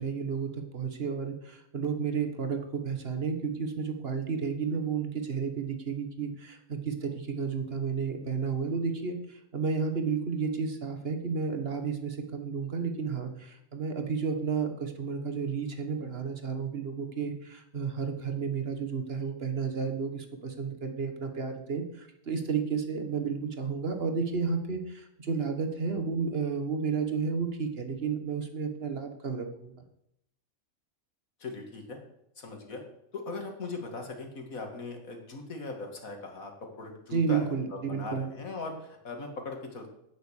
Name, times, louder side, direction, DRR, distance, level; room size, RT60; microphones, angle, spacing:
voice 1, 0.0-29.9 37.1-38.3, right 5 dB, 45° right, 7 dB, 1.7 m, -32 dB
voice 2, 31.4-32.0 32.4-32.8 33.1-36.5 36.8-37.4 37.9-39.9, left 3 dB, 80° left, 3 dB, 2.5 m, -39 dB
10.5 x 9.4 x 6.5 m, 0.79 s
omnidirectional pair, 1.4 m